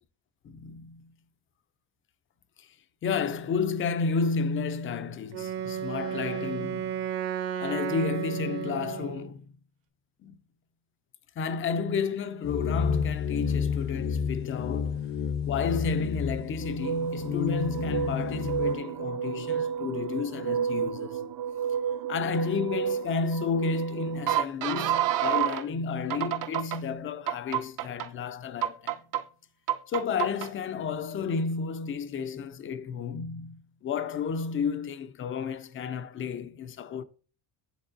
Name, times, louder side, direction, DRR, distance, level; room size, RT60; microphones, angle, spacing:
voice 1, 0.4-1.1 2.6-2.7 3.0-7.1 7.6-9.4 10.2-10.4 11.4-15.1 15.4-21.2 22.1-29.0 29.9-37.0, left 5 dB, 30° left, 0.4 m, -31 dB
Wind instrument woodwind instrument, 5.3-9.3, right 9 dB, 60° right, 1.1 m, -33 dB
sound 1, 12.4-18.8, left 7 dB, 60° left, 0.7 m, -30 dB
sound 2, 16.6-25.6 26.1-26.8 27.3-28.1 28.6-29.2 29.7-30.5, right 9 dB, 45° right, 0.5 m, -30 dB
9.9 x 3.7 x 2.5 m
cardioid pair, 120°, 47 cm